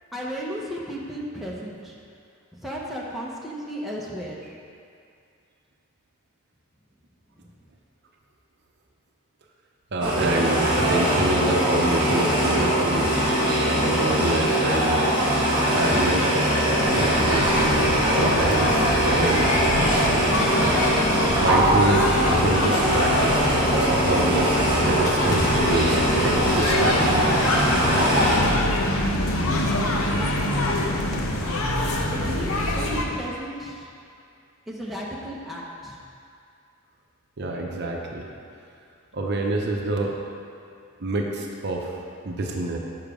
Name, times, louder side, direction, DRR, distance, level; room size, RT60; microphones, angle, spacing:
voice 1, 0.1-1.9 2.5-4.6 32.0-33.9 34.7-36.0, equal, ahead, -5 dB, 0.9 m, -34 dB
voice 2, 9.9-13.1 13.8-15.0 15.5-16.4 16.9-19.6 21.4-27.3 37.4-38.3 39.1-40.2 41.0-41.9 42.2-42.8, right 2 dB, 50° right, 0 dB, 0.7 m, -27 dB
sound 1, 10.0-28.4, right 1 dB, 20° right, 1.9 m, -22 dB
sound 2, 16.7-33.0, left 1 dB, 80° left, 0.8 m, -25 dB
7.2 x 6.0 x 5.0 m, 2.4 s
head